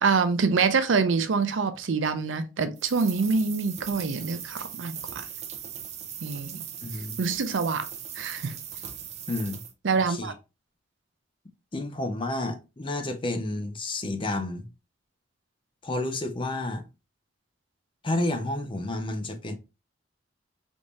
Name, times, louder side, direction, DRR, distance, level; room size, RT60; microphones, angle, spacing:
voice 1, 0.0-5.3 6.2-6.6 7.2-7.9 8.2-8.5 9.8-10.3, right 4 dB, 90° right, 0.5 m, -25 dB
sound 1, 2.8-9.7, right 8 dB, 35° right, 0.5 m, -39 dB
voice 2, 6.8-7.2 9.3-9.6 10.1-10.3 11.7-14.7 15.8-16.8 18.0-19.6, left 2 dB, 30° left, 0.5 m, -30 dB
3.5 x 2.6 x 3.0 m
head